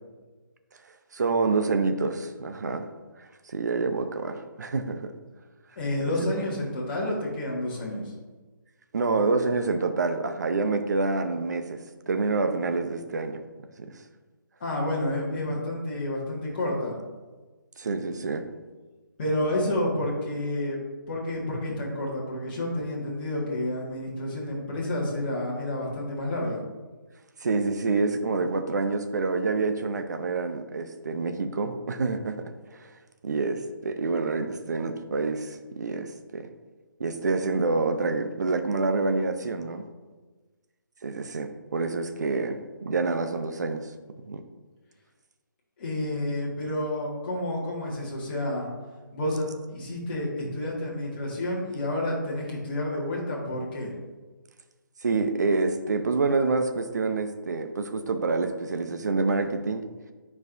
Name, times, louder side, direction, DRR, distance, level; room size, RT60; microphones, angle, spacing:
voice 1, 1.1-2.9 3.2-5.1 8.9-11.8 12.1-13.4 13.8-14.0 17.8-18.5 27.4-32.9 33.2-36.5 37.0-39.8 41.0-43.9 44.2-44.4 55.0-59.8, right 3 dB, 55° right, 7 dB, 0.7 m, -27 dB
voice 2, 5.7-8.1 14.6-16.9 19.2-20.8 21.1-26.6 45.8-48.7 49.1-53.9, left 1 dB, 30° left, -6 dB, 1.7 m, -29 dB
10.5 x 4.7 x 2.6 m, 1.3 s
hypercardioid pair, 170°, 11 cm